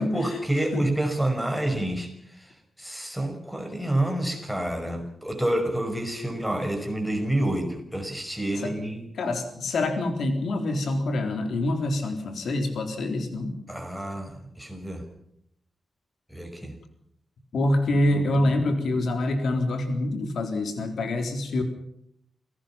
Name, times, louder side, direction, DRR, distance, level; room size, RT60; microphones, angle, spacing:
voice 1, 0.0-9.0 13.7-15.1 16.3-16.8 17.9-18.6, right 1 dB, ahead, 6 dB, 5.4 m, -28 dB
voice 2, 9.2-13.6 17.5-21.6, left 1 dB, 80° left, 6 dB, 3.8 m, -26 dB
28.0 x 18.0 x 5.8 m, 0.72 s
wide cardioid pair, 115°, 0 cm